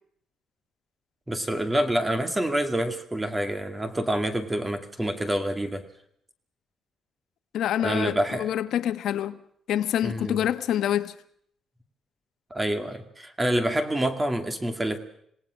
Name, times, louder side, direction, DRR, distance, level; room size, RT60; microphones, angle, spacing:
voice 1, 1.3-5.8 7.8-8.5 10.0-10.4 12.5-15.0, right 1 dB, 10° right, 2.3 m, -27 dB
voice 2, 7.5-9.4 9.7-11.1, left 11 dB, 80° left, 1.1 m, -26 dB
27.5 x 18.0 x 6.3 m
cardioid pair, 150°, 0 cm